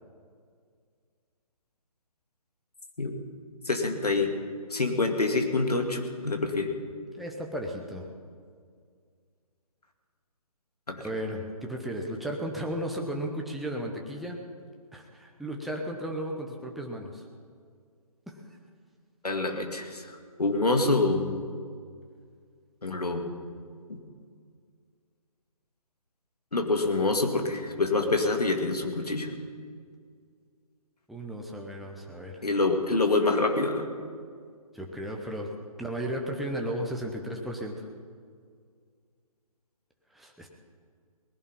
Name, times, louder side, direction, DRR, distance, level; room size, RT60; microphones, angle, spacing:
voice 1, 3.7-4.3 4.7-6.7 10.9-11.0 19.2-21.4 22.8-23.3 23.9-24.0 26.5-29.3 32.4-33.9, left 3 dB, 80° left, 4 dB, 2.2 m, -26 dB
voice 2, 7.1-8.1 11.0-14.4 14.9-17.3 18.3-18.4 31.1-32.4 34.7-35.5 35.8-37.9 40.1-40.5, equal, ahead, 0 dB, 0.8 m, -34 dB
19.5 x 11.0 x 5.6 m, 2.1 s
figure-of-eight pair, 145°, 20 cm